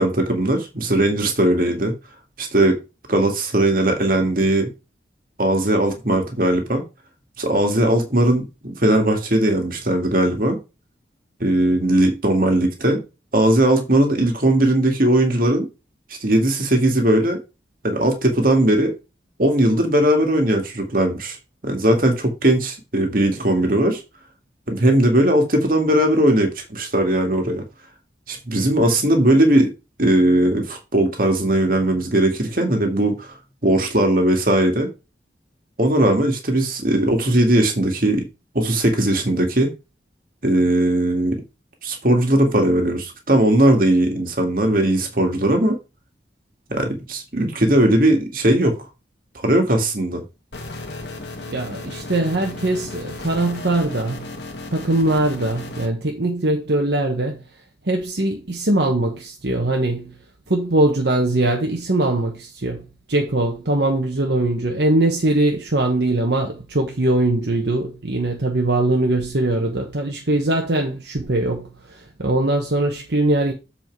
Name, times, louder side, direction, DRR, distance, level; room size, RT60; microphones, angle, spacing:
voice 1, 0.0-1.9 2.4-2.8 3.1-4.7 5.4-6.8 7.4-10.6 11.4-13.0 13.3-15.7 16.2-17.4 17.8-18.9 19.4-21.4 21.6-24.0 24.7-27.6 28.3-29.7 30.0-34.9 35.8-38.3 38.5-39.7 40.4-41.4 41.8-45.8 46.7-48.8 49.4-50.2, right 1 dB, 50° right, 2.1 m, -18 dB
sound 1, 50.5-55.9, left 2 dB, 75° left, 1.9 m, -34 dB
voice 2, 51.5-54.3 54.7-57.4 57.9-60.1 60.5-71.7 72.2-73.5, right 2 dB, 70° right, 1.3 m, -21 dB
7.5 x 4.9 x 4.7 m
head